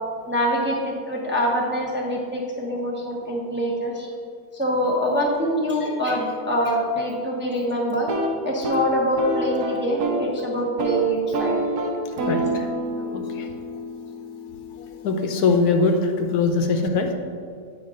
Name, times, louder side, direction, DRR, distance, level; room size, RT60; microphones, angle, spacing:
voice 1, 0.3-4.1 4.5-8.1 8.4-11.5, equal, 10° right, -3 dB, 0.6 m, -24 dB
sound 1, 8.0-10.3 10.6-11.0 11.3-15.2, right 1 dB, 90° right, 1.4 m, -28 dB
voice 2, 12.3-12.7 13.1-13.5 14.8-17.1, left 4 dB, 80° left, 4 dB, 1.2 m, -22 dB
9.0 x 5.1 x 3.7 m, 2.2 s
omnidirectional pair, 1.7 m